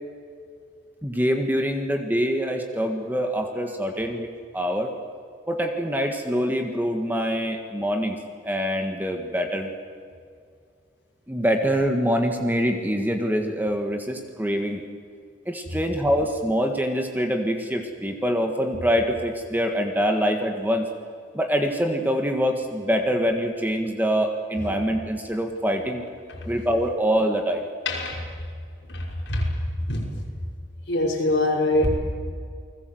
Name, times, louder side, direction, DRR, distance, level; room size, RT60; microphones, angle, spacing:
voice 1, 1.0-4.3 4.5-4.9 5.5-8.2 8.4-9.7 11.3-14.8 15.4-20.9 21.3-26.0 26.4-27.6, equal, 10° right, 4 dB, 1.6 m, -24 dB
voice 2, 27.9-28.3 28.9-29.5 29.9-30.0 30.9-31.9, left 1 dB, 65° left, -1 dB, 5.8 m, -24 dB
29.5 x 20.0 x 7.9 m, 2.2 s
head